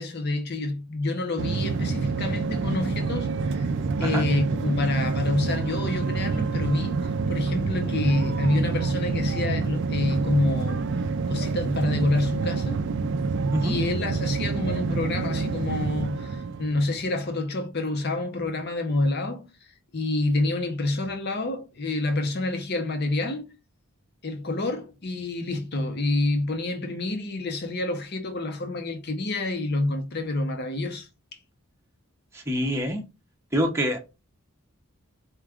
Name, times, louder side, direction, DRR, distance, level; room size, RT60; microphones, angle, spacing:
voice 1, 0.0-3.7 4.0-10.9 11.3-12.8 13.6-19.5 19.9-23.5 24.2-31.1, left 2 dB, 45° left, 0.8 m, -28 dB
sound 1, 1.4-17.1, right 4 dB, 55° right, 0.3 m, -27 dB
voice 2, 32.3-33.0 33.5-34.0, equal, 10° right, 0.7 m, -25 dB
4.5 x 2.4 x 3.4 m
head